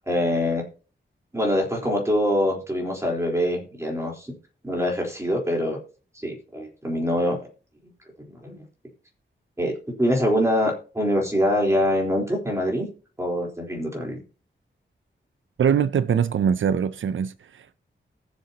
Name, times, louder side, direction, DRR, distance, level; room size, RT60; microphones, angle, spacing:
voice 1, 0.1-0.6 1.3-4.3 4.6-5.8 6.2-7.4 8.2-8.6 9.6-9.7 10.0-12.9 13.2-14.2, equal, 15° right, 3.9 m, -24 dB
voice 2, 15.6-17.8, right 7 dB, 85° right, 0.5 m, -23 dB
19.5 x 7.6 x 2.9 m
wide cardioid pair, 115°, 20 cm